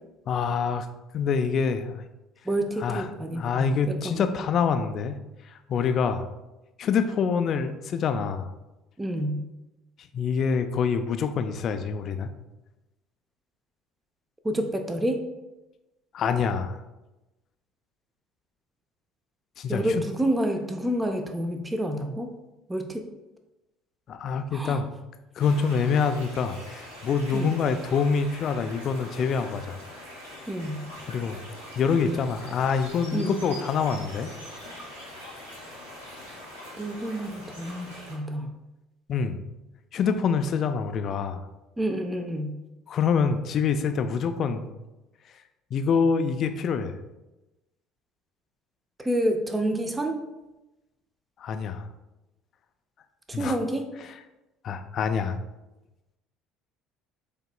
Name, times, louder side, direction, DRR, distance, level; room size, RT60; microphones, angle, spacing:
voice 1, 0.3-0.9 1.1-2.0 2.8-3.0 3.3-5.2 5.5-6.3 6.8-8.5 10.1-12.3 16.1-16.8 19.6-19.9 24.1-24.9 25.4-29.8 31.1-31.4 31.8-34.3 39.1-39.4 39.9-41.4 42.9-44.7 45.7-46.9 51.4-51.9 53.3-53.6 54.6-55.4, left 6 dB, 50° left, 8 dB, 0.4 m, -26 dB
voice 2, 2.4-4.3 9.0-9.4 14.4-15.2 19.7-22.3 22.7-23.0 24.5-24.8 27.3-27.6 30.5-30.8 33.1-33.4 36.8-38.5 41.8-42.5 49.0-50.1 53.3-53.9, right 1 dB, 15° right, 5 dB, 0.6 m, -28 dB
sound 1, 25.4-38.2, left 1 dB, 85° right, 1.4 m, -43 dB
7.8 x 2.9 x 2.2 m, 1.0 s
hypercardioid pair, 60°, 0 cm